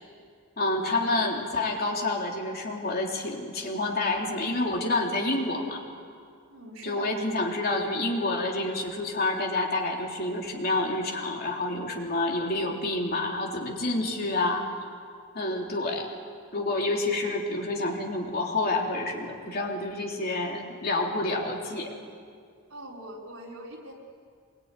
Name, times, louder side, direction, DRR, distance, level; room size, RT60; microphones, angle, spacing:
voice 1, 0.6-5.8 6.8-14.6 15.3-16.1 16.5-22.0, left 2 dB, 45° left, 0 dB, 3.5 m, -28 dB
voice 2, 6.5-7.1 22.7-23.9, right 1 dB, 65° right, -2 dB, 5.1 m, -42 dB
25.5 x 22.5 x 9.8 m, 2.1 s
head